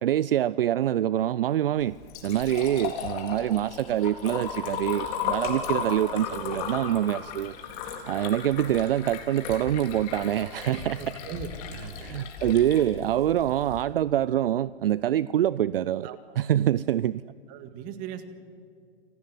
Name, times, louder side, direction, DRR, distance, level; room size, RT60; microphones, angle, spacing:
voice 1, 0.0-2.0 2.2-7.5 8.1-11.0 12.0-16.1 16.4-17.2, right 11 dB, 60° right, 19 dB, 0.5 m, -25 dB
Liquid, 1.8-13.8, left 6 dB, 35° left, 3.8 m, -35 dB
voice 2, 11.0-12.0 16.0-16.2 17.5-18.3, right 7 dB, 25° right, 10 dB, 1.9 m, -38 dB
27.5 x 18.0 x 9.4 m, 2.3 s
hypercardioid pair, 140°, 33 cm